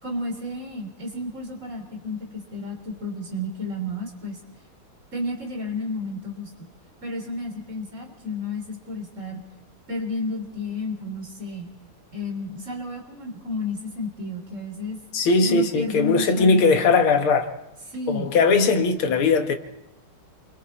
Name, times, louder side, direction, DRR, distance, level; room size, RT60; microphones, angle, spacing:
voice 1, 0.0-4.4 5.1-6.7 7.0-9.4 9.9-11.7 12.1-15.0 15.4-16.6 17.9-18.3, left 2 dB, 35° right, 3.7 m, -31 dB
voice 2, 15.1-17.5 18.1-19.5, left 4 dB, 75° left, 2.2 m, -19 dB
28.5 x 23.0 x 4.2 m
omnidirectional pair, 2.4 m